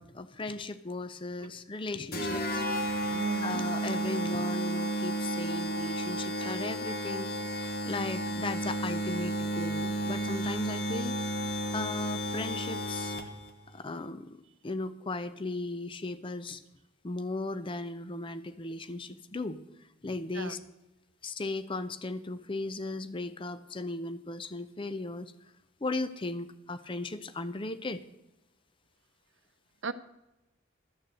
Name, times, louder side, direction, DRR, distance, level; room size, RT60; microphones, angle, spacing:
voice 1, 0.0-2.6 3.1-13.1 13.7-14.4 14.6-16.6 17.0-19.6 20.0-20.6 21.2-25.3 25.8-28.0, left 2 dB, 25° left, 12 dB, 0.5 m, -37 dB
sound 1, 2.1-13.5, right 1 dB, 50° left, 1.3 m, -32 dB
voice 2, 3.1-3.6 20.3-20.6 29.8-29.9, right 4 dB, 65° right, 12 dB, 0.7 m, -38 dB
13.0 x 6.7 x 7.7 m, 0.98 s
head